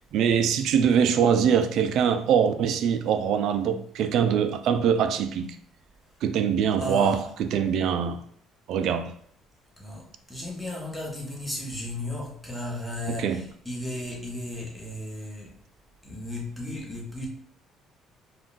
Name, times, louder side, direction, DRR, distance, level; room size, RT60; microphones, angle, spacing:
voice 1, 0.1-5.6 6.2-8.2 8.7-9.1 13.2-13.4, right 7 dB, 70° right, 0.3 m, -23 dB
voice 2, 6.8-7.3 9.8-15.5 16.0-17.3, left 1 dB, 5° left, 1.0 m, -34 dB
3.7 x 2.3 x 2.5 m
cardioid pair, 115°, 0 cm